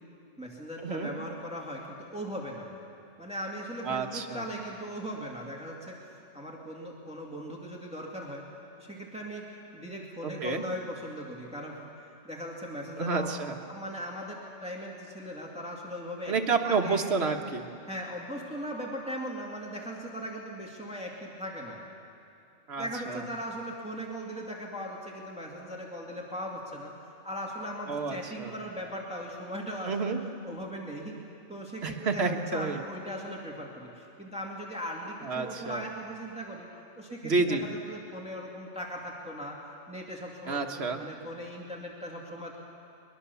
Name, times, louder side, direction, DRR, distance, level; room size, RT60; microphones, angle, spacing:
voice 1, 0.4-2.7 3.2-8.5 8.8-13.3 13.7-16.3 16.6-17.1 17.9-21.8 22.8-26.9 27.2-30.1 30.4-31.2 31.5-36.7 37.0-39.6 39.9-40.6 41.0-42.6, equal, 5° right, -2 dB, 2.3 m, -39 dB
voice 2, 3.8-4.5 10.2-10.6 13.0-13.6 16.3-17.7 22.7-23.3 27.9-28.6 29.8-30.2 31.8-32.8 35.2-35.8 37.2-37.7 40.4-41.0, right 4 dB, 60° right, 4 dB, 1.5 m, -29 dB
22.0 x 21.5 x 7.0 m, 2.6 s
omnidirectional pair, 1.3 m